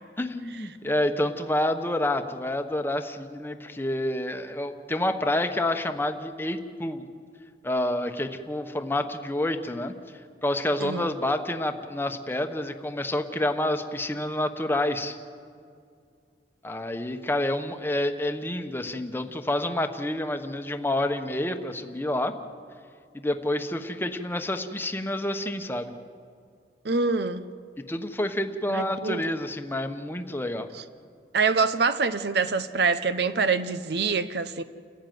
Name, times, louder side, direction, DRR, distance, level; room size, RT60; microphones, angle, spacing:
voice 1, 0.2-7.1 7.6-9.9 10.4-15.2 16.6-22.3 23.1-25.9 27.9-30.7, left 1 dB, 15° left, 1.1 m, -28 dB
voice 2, 10.8-11.1 26.8-27.4 28.7-29.2 31.3-34.6, right 4 dB, 65° right, 0.8 m, -25 dB
29.5 x 14.0 x 9.4 m
head